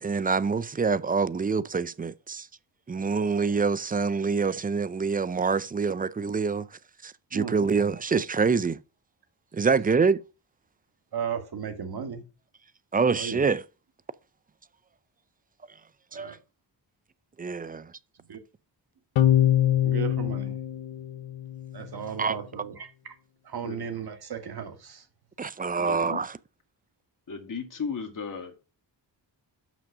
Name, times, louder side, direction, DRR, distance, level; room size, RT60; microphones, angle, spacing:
voice 1, 0.0-2.5 2.9-6.7 7.0-8.8 9.5-10.2 12.9-13.6 16.1-16.4 17.4-17.9 22.2-22.4 25.4-26.4, right 5 dB, 20° right, 0.4 m, -26 dB
voice 2, 11.1-12.2 13.2-13.5 16.1-16.3 18.3-18.4 19.8-20.6 21.7-23.1 23.5-25.0, right 7 dB, 55° right, 1.8 m, -35 dB
sound 1, 19.2-21.8, left 11 dB, 80° left, 0.8 m, -24 dB
voice 3, 25.8-26.2 27.3-28.6, left 5 dB, 45° left, 2.0 m, -36 dB
6.6 x 6.1 x 5.9 m
cardioid pair, 95°, 44 cm